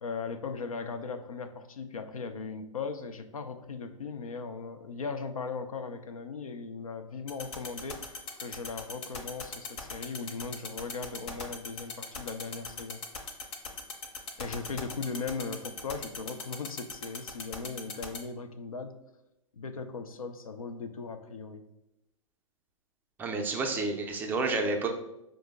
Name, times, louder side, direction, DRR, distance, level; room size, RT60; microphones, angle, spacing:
voice 1, 0.0-13.0 14.4-19.0 19.5-21.6, left 4 dB, 80° left, 9 dB, 0.5 m, -38 dB
sound 1, 7.3-18.2, left 4 dB, 55° left, 0.8 m, -38 dB
voice 2, 23.2-24.9, right 3 dB, 10° right, 2 dB, 0.4 m, -30 dB
5.0 x 2.0 x 3.4 m, 0.88 s
figure-of-eight pair, 115°, 18 cm